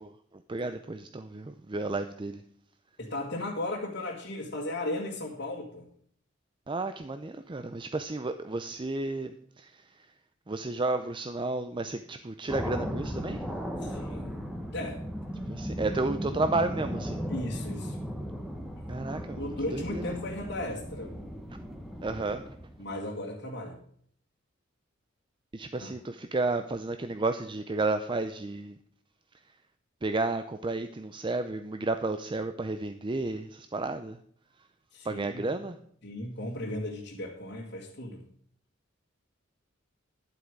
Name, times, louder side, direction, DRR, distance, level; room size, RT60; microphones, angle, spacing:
voice 1, 0.5-2.4 6.7-9.7 10.5-13.4 15.5-17.2 18.9-20.0 22.0-22.4 25.5-28.8 30.0-34.2 35.1-35.8, right 2 dB, 25° right, 9 dB, 0.5 m, -32 dB
voice 2, 3.0-5.9 13.8-14.4 14.7-15.0 17.3-18.0 18.8-18.9 19.4-21.1 22.8-23.8 25.8-25.9 34.9-35.6 36.0-38.2, left 1 dB, 55° left, -3 dB, 1.8 m, -36 dB
sound 1, 12.5-22.9, equal, ahead, 1.3 m, -36 dB
11.5 x 8.0 x 5.2 m, 0.64 s
head